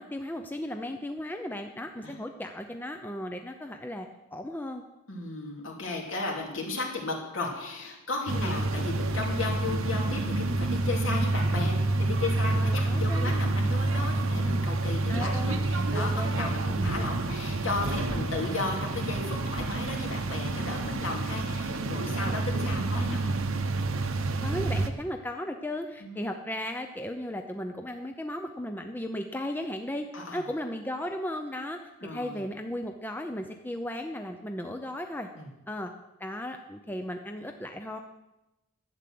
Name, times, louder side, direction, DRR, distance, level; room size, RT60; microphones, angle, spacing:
voice 1, 0.0-4.8 8.3-8.5 12.5-13.3 15.1-16.9 24.4-30.1 30.3-35.3 35.7-35.9 36.2-38.0, left 1 dB, 10° left, 5 dB, 0.6 m, -36 dB
voice 2, 5.1-23.4 26.0-26.2 30.1-30.4 32.0-32.4 35.4-35.5, left 3 dB, 65° left, 0 dB, 2.8 m, -34 dB
sound 1, 8.3-24.9, right 2 dB, 70° right, 1.0 m, -28 dB
11.5 x 8.3 x 7.7 m, 0.97 s
head